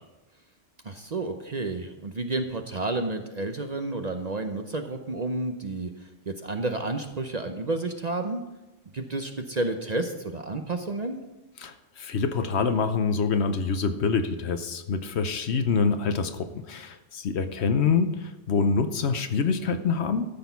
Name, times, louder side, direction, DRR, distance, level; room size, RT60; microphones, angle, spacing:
voice 1, 0.8-8.4 8.9-11.2, right 2 dB, 40° right, 6 dB, 0.7 m, -31 dB
voice 2, 11.6-20.3, left 5 dB, 60° left, 9 dB, 1.0 m, -26 dB
13.5 x 6.2 x 5.7 m, 1.0 s
omnidirectional pair, 1.3 m